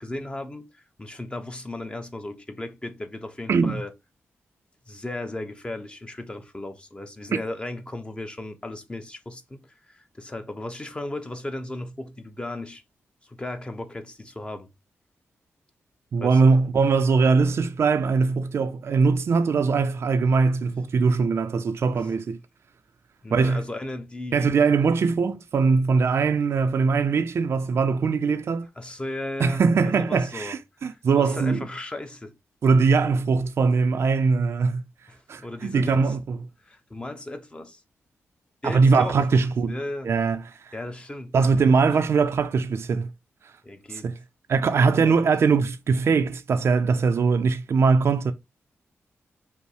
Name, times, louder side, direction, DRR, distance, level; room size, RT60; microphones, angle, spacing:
voice 1, 0.0-3.9 4.9-12.8 13.2-14.7 16.2-16.5 21.9-22.1 23.2-24.6 28.8-30.6 30.9-32.3 35.1-36.2 36.6-37.8 38.6-40.1 40.7-41.6 41.9-42.0 43.6-44.1 44.8-45.3, left 2 dB, 20° left, 0.8 m, -36 dB
voice 2, 3.5-3.8 16.1-22.4 23.3-23.6 24.3-28.7 29.4-31.7 32.6-34.8 35.3-36.4 38.6-39.7 40.0-40.7 41.3-43.1 43.4-43.5 43.9-44.2 44.5-48.3, right 4 dB, 65° right, 0.5 m, -21 dB
5.4 x 2.1 x 4.7 m
cardioid pair, 85°, 5 cm